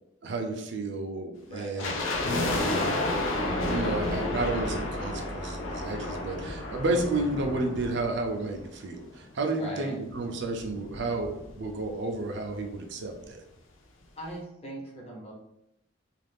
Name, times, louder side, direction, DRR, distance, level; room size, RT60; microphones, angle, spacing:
voice 1, 0.2-3.1 3.7-13.4, right 2 dB, 60° right, 3 dB, 0.5 m, -32 dB
voice 2, 1.5-1.9 9.6-10.0 14.2-15.3, right 1 dB, 30° left, -3 dB, 0.8 m, -40 dB
sound 1, 1.8-9.1 9.3-9.4 10.1-11.9 12.2-12.3 12.5-12.8 13.2-13.3, left 2 dB, 75° left, 0.5 m, -32 dB
sound 2, 3.3-8.6, equal, 5° right, 0.6 m, -40 dB
2.5 x 2.4 x 3.4 m, 0.85 s
head